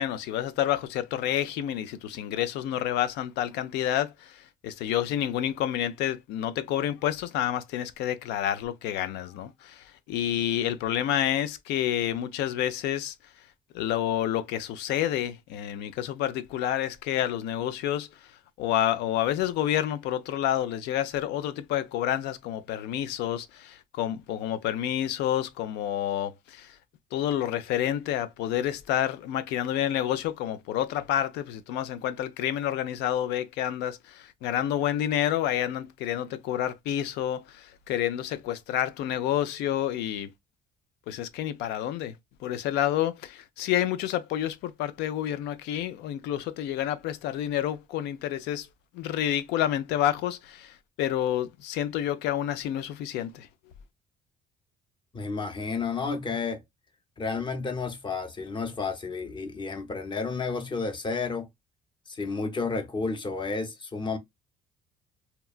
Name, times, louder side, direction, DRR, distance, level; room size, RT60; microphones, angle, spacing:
voice 1, 0.0-13.1 13.7-18.1 18.6-26.8 27.1-40.3 41.1-42.2 42.4-48.7 48.9-53.5, left 11 dB, 85° left, 0.5 m, -29 dB
voice 2, 55.1-56.6 57.2-61.5 62.1-64.2, left 4 dB, 30° left, 0.7 m, -31 dB
2.9 x 2.2 x 2.3 m
cardioid pair, 110°, 17 cm